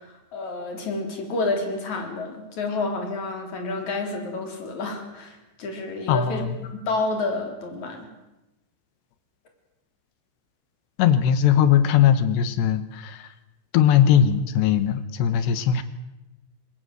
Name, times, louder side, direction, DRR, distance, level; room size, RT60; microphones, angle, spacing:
voice 1, 0.0-6.4 6.9-8.1, left 3 dB, 40° left, 4 dB, 4.8 m, -29 dB
voice 2, 6.1-6.5 11.0-13.3 13.7-15.8, left 9 dB, 75° left, 12 dB, 3.2 m, -19 dB
25.0 x 20.5 x 8.0 m, 0.97 s
omnidirectional pair, 5.3 m